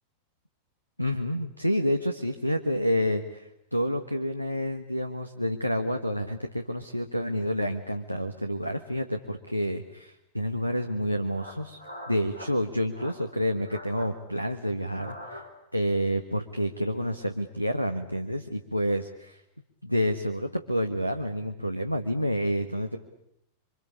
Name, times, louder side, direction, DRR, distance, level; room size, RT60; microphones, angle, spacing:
voice 1, 1.0-11.8 12.1-15.4 15.7-19.4 19.8-23.0, equal, 90° left, 8 dB, 1.4 m, -29 dB
sound 1, 10.8-10.9 11.3-12.5 12.9-13.2 13.5-14.1 14.8-15.7, left 1 dB, 85° right, 4.4 m, -43 dB
27.0 x 25.0 x 8.4 m, 0.77 s
figure-of-eight pair, 90°, 0 cm